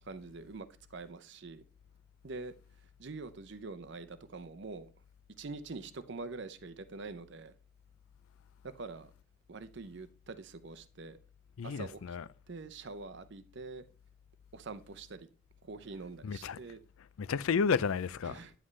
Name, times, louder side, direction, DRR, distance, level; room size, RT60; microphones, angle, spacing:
voice 1, 0.0-1.6 2.2-2.5 3.0-4.9 5.4-7.5 8.6-9.1 9.5-11.2 11.6-12.0 12.5-13.9 14.5-15.3 15.6-16.8 18.2-18.5, right 3 dB, 55° right, 0.6 m, -45 dB
voice 2, 11.6-12.3 16.2-16.6 17.0-18.4, left 5 dB, 75° left, 0.4 m, -32 dB
9.8 x 7.4 x 3.2 m
head